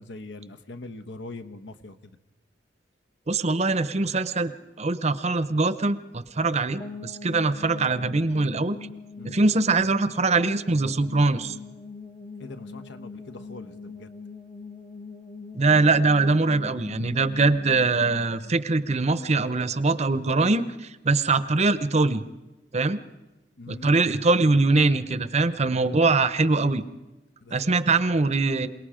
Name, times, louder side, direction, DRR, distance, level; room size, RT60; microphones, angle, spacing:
voice 1, 0.0-2.1 9.2-9.3 12.4-14.1 23.6-24.2 27.4-27.7, left 2 dB, 70° left, 8 dB, 1.1 m, -42 dB
voice 2, 3.3-4.5 4.8-8.8 9.2-11.5 15.5-22.2 22.7-23.0 23.7-26.8 27.5-28.7, right 3 dB, 35° right, 13 dB, 0.8 m, -22 dB
sound 1, 6.8-19.7, left 4 dB, 25° left, 0.7 m, -43 dB
27.5 x 19.0 x 5.0 m, 1.1 s
head